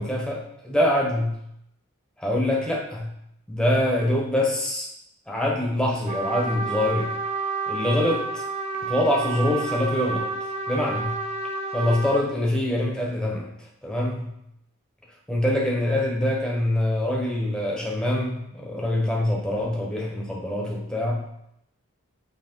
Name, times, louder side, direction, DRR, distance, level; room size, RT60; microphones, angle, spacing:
voice 1, 0.0-1.4 2.2-3.1 3.5-4.9 5.3-7.1 7.7-8.4 8.8-10.2 10.7-11.1 11.7-13.5 13.8-14.3 15.3-21.2, left 1 dB, 5° left, -2 dB, 1.1 m, -24 dB
Trumpet, 6.1-12.3, right 3 dB, 30° right, 0.5 m, -30 dB
8.0 x 3.2 x 4.6 m, 0.78 s
head